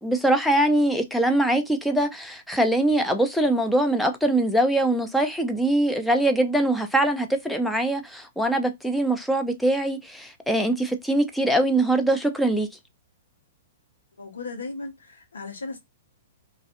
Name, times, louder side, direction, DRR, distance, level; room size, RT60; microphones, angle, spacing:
voice 1, 0.0-12.7, right 1 dB, ahead, 0.5 m, -22 dB
voice 2, 14.2-15.8, left 3 dB, 80° left, 1.0 m, -36 dB
2.4 x 2.4 x 2.5 m
figure-of-eight pair, 115°, 0 cm